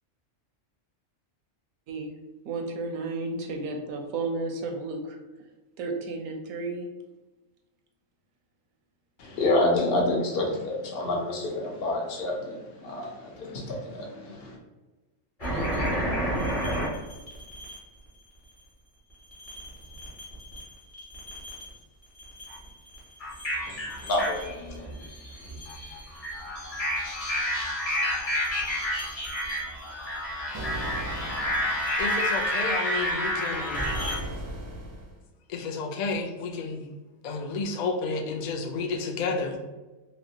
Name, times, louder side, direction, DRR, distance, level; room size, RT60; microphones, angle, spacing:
voice 1, 2.4-5.2 5.8-6.9, right 3 dB, 85° right, 3 dB, 1.0 m, -32 dB
voice 2, 9.2-14.6 23.7-24.9, left 2 dB, 55° left, 0 dB, 0.9 m, -28 dB
sound 1, 15.4-17.8 19.3-20.6 20.9-21.8 22.2-34.2, equal, 30° left, 1.2 m, -30 dB
sound 2, 30.5-32.0 33.7-35.2, right 1 dB, 45° right, 0.4 m, -36 dB
voice 3, 32.0-33.8 35.5-36.9 37.2-39.6, left 4 dB, 80° left, 1 dB, 0.4 m, -31 dB
3.1 x 2.7 x 2.7 m, 1.2 s
omnidirectional pair, 1.3 m